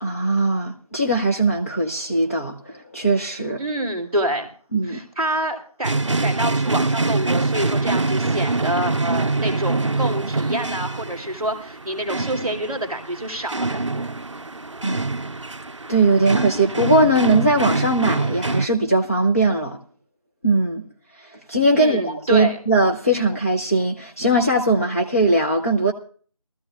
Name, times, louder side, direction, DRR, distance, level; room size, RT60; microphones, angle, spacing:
voice 1, 0.0-3.6 4.7-5.0 14.8-15.0 15.9-19.8 20.4-20.8 21.2-25.9, right 2 dB, 25° left, 0.8 m, -20 dB
voice 2, 3.6-4.5 4.8-14.1 21.7-22.6, right 1 dB, 5° left, 1.4 m, -27 dB
sound 1, 5.8-18.7, right 3 dB, 55° right, 0.5 m, -24 dB
20.0 x 14.5 x 2.4 m
figure-of-eight pair, 175°, 19 cm